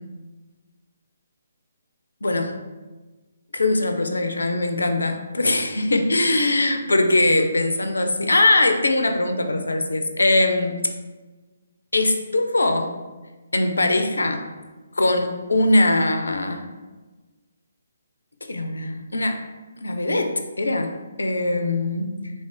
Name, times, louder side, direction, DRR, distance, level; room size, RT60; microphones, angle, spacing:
voice 1, 2.2-2.6 3.5-10.9 11.9-12.9 13.5-14.5 15.0-16.7 18.5-19.4 19.8-22.2, left 2 dB, 75° left, 6 dB, 0.4 m, -21 dB
3.6 x 2.4 x 3.6 m, 1.2 s
figure-of-eight pair, 140°, 0 cm